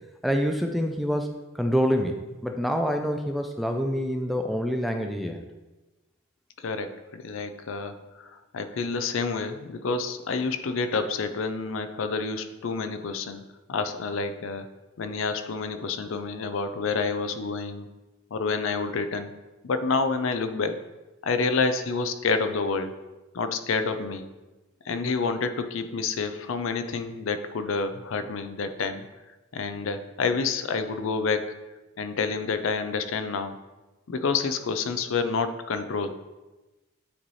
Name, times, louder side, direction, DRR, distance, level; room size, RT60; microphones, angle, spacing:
voice 1, 0.2-1.3 1.6-5.4, equal, ahead, 3 dB, 0.3 m, -26 dB
voice 2, 6.6-13.4 13.7-14.7 15.0-17.9 18.3-19.4 19.6-20.8 21.2-23.0 23.3-24.3 24.9-29.0 29.5-31.5 32.0-33.6 34.1-36.1, left 4 dB, 70° left, 9 dB, 0.5 m, -28 dB
8.7 x 3.1 x 4.1 m, 1.1 s
head